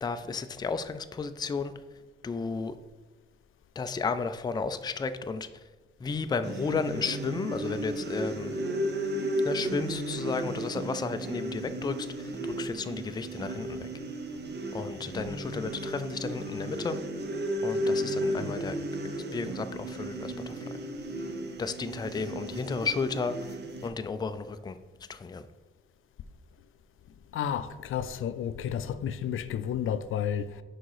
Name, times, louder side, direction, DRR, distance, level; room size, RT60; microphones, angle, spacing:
voice 1, 0.0-1.7 2.2-2.7 3.8-5.5 6.0-8.6 9.4-13.9 14.7-17.0 17.6-18.8 19.1-20.7 21.6-23.4 23.8-24.8 25.1-25.4, left 4 dB, 20° left, 0.3 m, -33 dB
sound 1, 6.4-23.9, right 1 dB, 55° right, 0.8 m, -34 dB
voice 2, 27.3-30.6, left 9 dB, 85° left, 0.4 m, -31 dB
6.3 x 4.9 x 4.8 m
wide cardioid pair, 135°, 20 cm